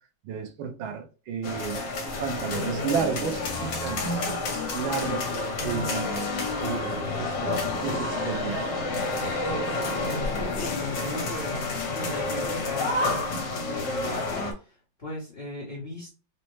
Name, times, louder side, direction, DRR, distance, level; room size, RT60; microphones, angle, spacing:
voice 1, 0.2-1.8 2.2-6.1 6.6-8.9, right 7 dB, 85° right, 1.5 m, -32 dB
sound 1, 1.4-14.5, left 2 dB, 65° left, 1.4 m, -29 dB
voice 2, 10.1-16.1, left 2 dB, 40° left, 1.0 m, -37 dB
4.2 x 2.1 x 3.1 m
omnidirectional pair, 2.2 m